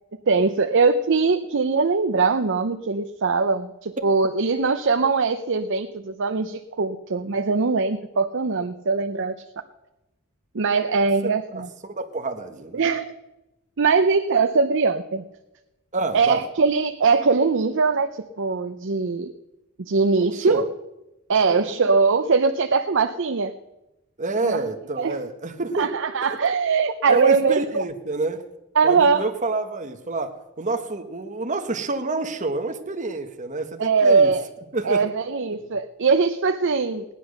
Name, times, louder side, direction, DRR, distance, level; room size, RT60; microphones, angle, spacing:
voice 1, 0.3-9.3 10.5-11.7 12.7-13.1 13.8-15.2 16.1-18.1 18.4-19.3 19.8-20.6 21.3-23.5 24.4-24.5 25.0-25.2 25.8-27.8 28.8-29.2 33.8-34.5 34.8-37.1, right 4 dB, 60° right, 7 dB, 0.6 m, -21 dB
voice 2, 11.8-12.9 15.9-16.4 20.2-20.7 21.4-21.9 24.2-25.9 27.1-28.4 28.8-34.3 34.7-35.0, right 3 dB, 35° right, 5 dB, 1.3 m, -28 dB
17.5 x 10.0 x 6.4 m, 0.97 s
head